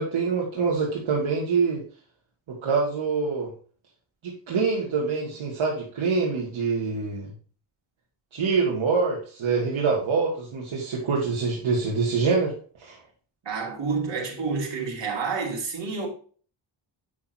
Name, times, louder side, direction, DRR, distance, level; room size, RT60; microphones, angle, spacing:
voice 1, 0.0-1.8 2.5-3.5 4.2-7.3 8.3-12.5 12.8-13.0, right 4 dB, 80° right, 2.1 m, -25 dB
voice 2, 13.4-16.1, right 4 dB, 65° right, 3.0 m, -29 dB
8.4 x 5.9 x 2.7 m
wide cardioid pair, 130°, 47 cm